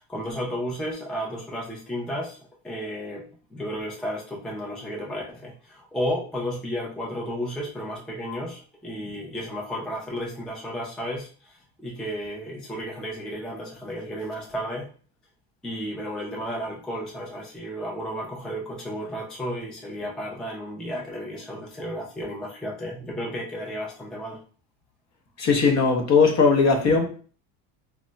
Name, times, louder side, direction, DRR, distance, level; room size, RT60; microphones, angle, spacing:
voice 1, 0.0-14.9 15.6-24.4, equal, ahead, 0.4 m, -33 dB
voice 2, 25.4-27.1, left 4 dB, 35° left, 0.7 m, -19 dB
2.2 x 2.0 x 3.8 m
supercardioid pair, 105°, 44 cm